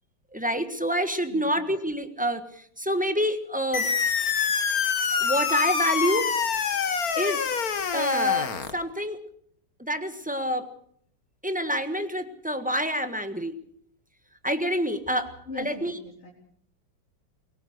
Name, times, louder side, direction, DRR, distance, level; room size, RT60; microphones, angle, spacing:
voice 1, 0.3-2.4 2.8-3.9 5.1-6.3 7.1-7.4 7.9-9.2 9.8-10.6 11.4-13.6 14.4-15.3 15.6-15.9, equal, 5° right, 9 dB, 1.2 m, -27 dB
sound 1, 3.7-8.7, left 6 dB, 50° left, 1.7 m, -26 dB
voice 2, 15.5-16.3, left 2 dB, 35° left, -3 dB, 3.9 m, -40 dB
23.0 x 18.0 x 6.5 m, 0.66 s
omnidirectional pair, 2.1 m